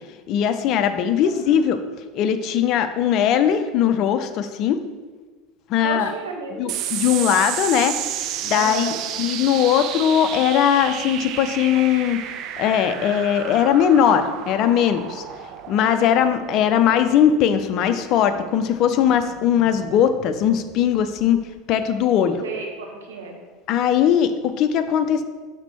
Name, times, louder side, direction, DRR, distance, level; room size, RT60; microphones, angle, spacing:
voice 1, 0.3-1.8 2.1-4.8 5.7-6.1 6.6-12.2 12.6-15.2 15.7-21.4 21.7-22.4 23.7-25.2, left 9 dB, 50° left, 9 dB, 0.5 m, -20 dB
voice 2, 1.2-1.6 5.8-6.7 8.5-9.0 15.9-16.2 22.4-23.4, right 4 dB, 80° right, 1 dB, 1.0 m, -33 dB
sound 1, 6.7-21.5, right 10 dB, 50° right, 0.4 m, -32 dB
6.0 x 4.4 x 4.2 m, 1.4 s
figure-of-eight pair, 75°, 0 cm